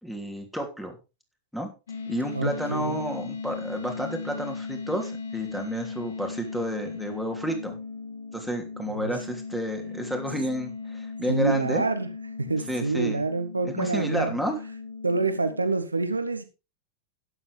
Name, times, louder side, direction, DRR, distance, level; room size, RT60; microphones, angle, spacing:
voice 1, 0.0-1.0 1.5-1.7 2.1-7.8 8.3-11.8 12.7-13.2 13.6-14.6, equal, ahead, 3 dB, 3.1 m, -31 dB
sound 1, 1.9-15.7, left 4 dB, 65° left, 2.6 m, -37 dB
voice 2, 2.3-3.1 8.9-9.1 11.3-12.1 12.4-14.4 15.0-16.4, right 3 dB, 80° right, 9 dB, 1.6 m, -27 dB
12.5 x 9.8 x 3.5 m, 0.29 s
figure-of-eight pair, 90°, 0 cm